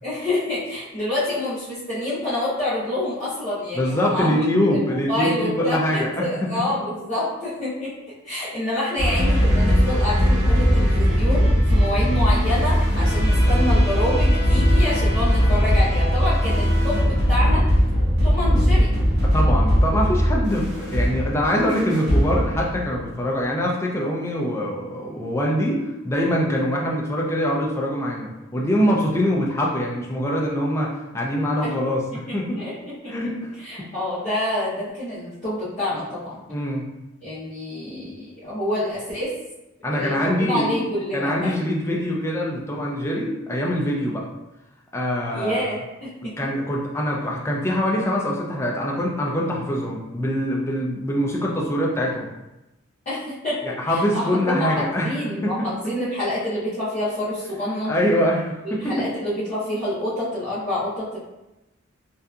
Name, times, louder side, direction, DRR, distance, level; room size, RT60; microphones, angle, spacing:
voice 1, 0.0-4.4 4.7-7.9 8.2-17.6 18.2-18.9 31.6-31.7 32.6-33.3 33.6-36.4 37.2-39.3 39.9-41.5 45.3-46.3 53.1-53.6 53.9-57.9 58.6-61.2, left 1 dB, 35° left, -13 dB, 0.7 m, -27 dB
voice 2, 3.7-6.5 11.9-12.2 19.2-32.7 33.1-33.3 33.8-33.9 36.5-36.9 39.8-40.7 41.1-44.2 44.9-45.7 46.4-52.3 53.6-55.7 57.9-59.1, equal, 15° left, -2 dB, 0.3 m, -24 dB
sound 1, 9.0-23.0, equal, 50° right, 0.7 m, -19 dB
2.6 x 2.3 x 2.3 m, 0.97 s
head